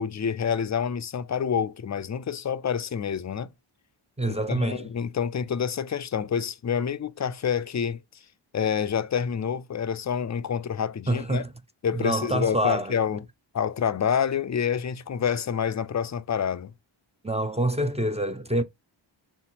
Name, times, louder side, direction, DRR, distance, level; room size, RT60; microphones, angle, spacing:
voice 1, 0.0-3.5 4.3-8.0 8.5-11.4 11.8-13.2 13.5-16.7, left 7 dB, 35° left, 0.4 m, -27 dB
voice 2, 4.2-4.9 11.1-11.5 11.9-13.0 17.2-18.6, right 1 dB, 15° right, 0.5 m, -26 dB
4.2 x 3.7 x 2.8 m
wide cardioid pair, 55°, 49 cm